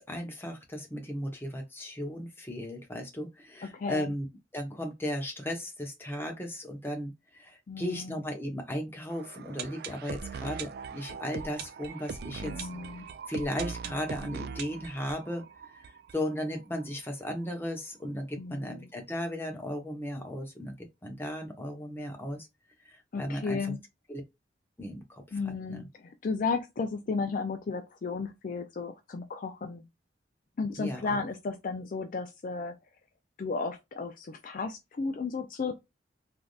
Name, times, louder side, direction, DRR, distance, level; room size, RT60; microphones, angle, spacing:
voice 1, 0.0-4.3 4.5-12.7 13.3-15.5 15.7-22.5 22.9-23.7 24.1-24.2 24.8-25.4 25.7-25.9 30.8-31.2, equal, 10° left, 0.8 m, -36 dB
voice 2, 3.7-4.1 7.7-8.2 12.4-13.1 18.4-18.9 23.1-23.8 25.3-29.8 30.6-32.8 33.4-35.8, left 4 dB, 45° left, 0.4 m, -34 dB
sound 1, 9.1-16.9 17.1-17.2 17.4-17.5 18.0-18.1, right 6 dB, 55° right, 0.3 m, -41 dB
3.3 x 2.6 x 2.3 m
head